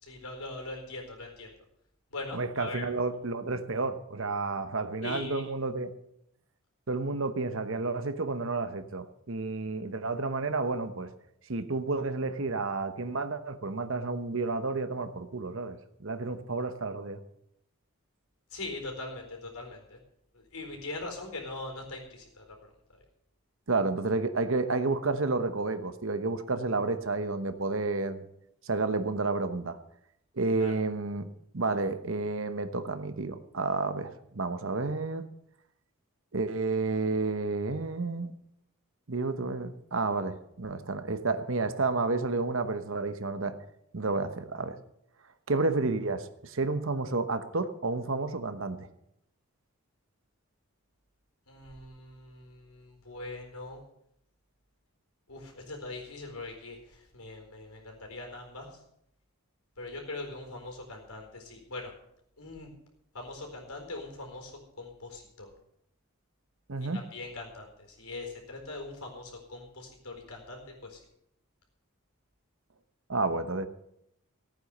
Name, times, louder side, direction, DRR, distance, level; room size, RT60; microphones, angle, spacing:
voice 1, 0.0-1.5 2.1-2.9 5.0-5.4 18.5-20.0 20.3-22.7 30.6-30.7 51.5-53.8 55.3-58.7 59.8-61.9 62.4-62.7 63.1-65.5 66.9-71.0, left 2 dB, 85° left, 2 dB, 4.3 m, -41 dB
voice 2, 2.3-5.9 6.9-11.1 11.5-17.2 23.7-28.3 28.6-29.8 30.4-31.3 31.5-35.2 36.3-38.3 39.1-43.5 43.9-44.8 45.5-48.9 66.7-67.0 73.1-73.7, right 3 dB, 60° right, 10 dB, 1.0 m, -31 dB
15.0 x 9.2 x 6.6 m, 0.77 s
head